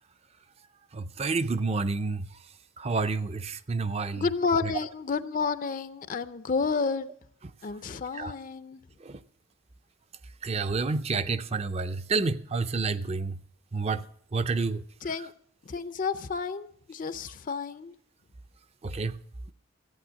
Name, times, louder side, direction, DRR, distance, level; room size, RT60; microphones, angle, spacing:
voice 1, 0.9-2.3 2.8-4.3 8.1-8.3 9.0-9.2 10.4-13.3 13.7-14.0 14.3-14.8 18.8-19.1, right 4 dB, 30° right, 0.4 m, -29 dB
voice 2, 4.2-7.1 7.6-8.8 15.0-15.3 15.7-17.9, left 5 dB, 40° left, 0.4 m, -30 dB
14.5 x 8.6 x 6.2 m
head